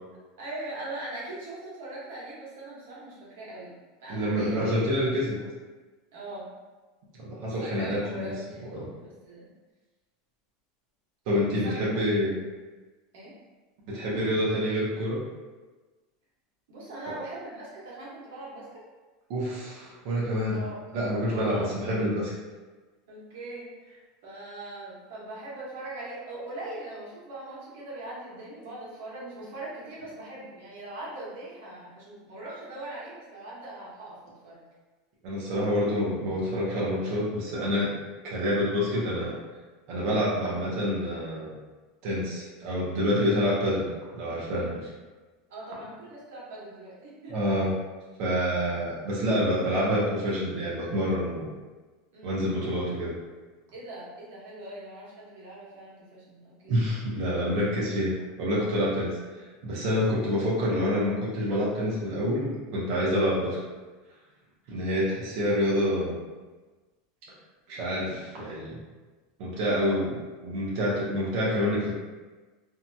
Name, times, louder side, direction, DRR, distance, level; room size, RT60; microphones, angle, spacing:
voice 1, 0.4-3.7 4.0-4.7 6.1-6.5 7.4-9.5 11.5-12.0 13.1-13.3 16.7-18.8 20.5-20.8 21.3-21.7 23.1-34.2 34.4-34.6 35.6-35.8 44.6-44.9 45.5-47.4 52.1-52.5 53.7-56.8, right 2 dB, 70° right, -6 dB, 1.1 m, -41 dB
voice 2, 4.1-5.4 7.2-8.3 8.7-8.9 11.3-12.4 13.9-15.2 19.3-20.6 20.9-22.3 35.2-37.9 38.2-39.3 39.9-41.5 42.0-44.7 47.3-47.7 48.2-51.5 52.2-53.1 56.7-59.2 59.6-63.6 64.7-66.1 67.7-68.7 69.4-72.0, equal, 45° right, -6 dB, 0.8 m, -27 dB
2.8 x 2.7 x 2.3 m, 1.3 s
supercardioid pair, 180°, 0 cm